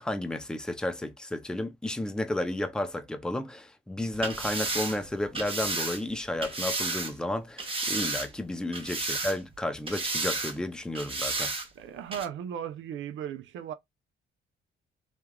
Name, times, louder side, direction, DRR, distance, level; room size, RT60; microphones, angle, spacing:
voice 1, 0.0-11.5, left 1 dB, 5° left, 0.5 m, -32 dB
sound 1, 4.1-7.1 7.6-8.4 8.7-9.6 9.9-10.5 10.9-11.7 12.1-12.2, right 3 dB, 25° right, 0.9 m, -32 dB
voice 2, 11.8-13.7, right 9 dB, 75° right, 0.5 m, -36 dB
3.2 x 2.3 x 2.2 m
cardioid pair, 90°, 20 cm